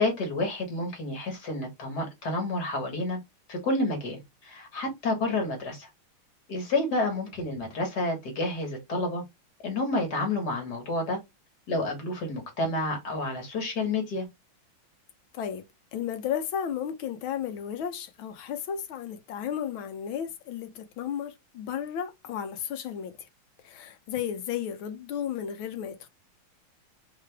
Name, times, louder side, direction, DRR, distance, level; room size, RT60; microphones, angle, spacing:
voice 1, 0.0-3.2 3.5-5.9 6.5-9.2 9.6-11.2 11.7-14.3, left 2 dB, 55° left, 2.0 m, -29 dB
voice 2, 15.3-15.6 15.9-23.2 23.6-26.1, left 9 dB, 75° left, 1.6 m, -33 dB
3.9 x 3.3 x 3.4 m
omnidirectional pair, 2.3 m